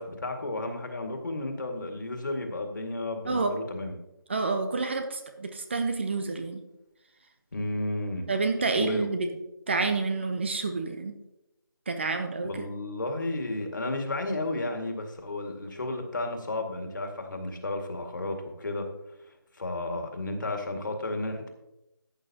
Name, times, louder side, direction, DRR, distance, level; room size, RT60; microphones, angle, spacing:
voice 1, 0.0-3.9 7.5-8.3 8.8-9.1 12.4-18.9 19.5-21.5, left 2 dB, 55° left, 3 dB, 2.0 m, -32 dB
voice 2, 4.3-6.6 8.3-9.3 9.7-11.1 11.9-12.7, right 3 dB, 30° right, 7 dB, 0.8 m, -29 dB
14.0 x 8.6 x 2.9 m, 0.90 s
figure-of-eight pair, 165°, 12 cm